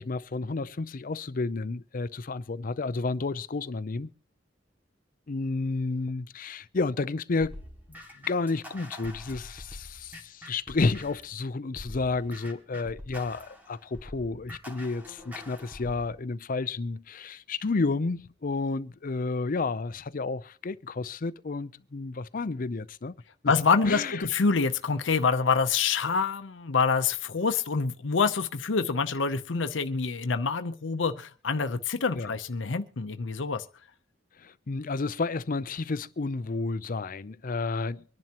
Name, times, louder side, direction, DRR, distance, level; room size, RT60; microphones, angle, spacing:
voice 1, 0.0-4.1 5.3-7.6 8.3-23.1 23.9-24.3 32.1-32.3 34.4-38.0, left 3 dB, 50° left, 0.6 m, -31 dB
sound 1, 7.4-11.3 11.8-16.1, left 1 dB, 10° right, 2.2 m, -45 dB
voice 2, 23.5-33.6, left 5 dB, 90° left, 0.7 m, -26 dB
24.5 x 10.5 x 2.9 m
head